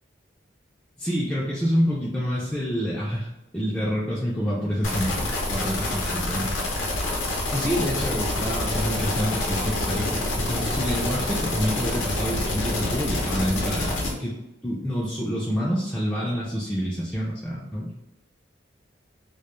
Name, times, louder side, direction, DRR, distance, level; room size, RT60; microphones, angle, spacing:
voice 1, 1.0-3.3 3.5-6.6 7.5-14.3 14.6-17.9, equal, 5° left, -8 dB, 0.3 m, -27 dB
sound 1, 4.8-14.1, left 2 dB, 90° left, 0.6 m, -27 dB
2.1 x 2.1 x 3.0 m, 0.90 s
head